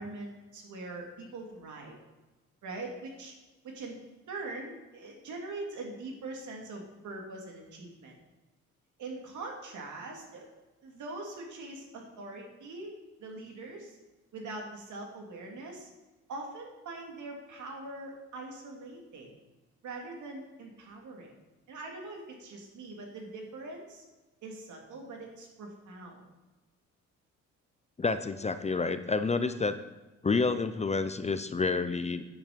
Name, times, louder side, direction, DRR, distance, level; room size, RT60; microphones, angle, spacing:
voice 1, 0.0-2.0 2.6-3.3 3.6-4.0 4.3-8.1 9.0-10.5 10.8-12.9 13.2-14.0 14.3-15.9 16.3-19.3 19.8-21.3 21.7-24.0 24.4-26.2, right 2 dB, 75° right, 0 dB, 2.8 m, -42 dB
voice 2, 28.0-29.8 30.2-32.2, left 4 dB, 20° left, 11 dB, 0.6 m, -29 dB
9.4 x 8.6 x 5.1 m, 1.1 s
cardioid pair, 90°, 30 cm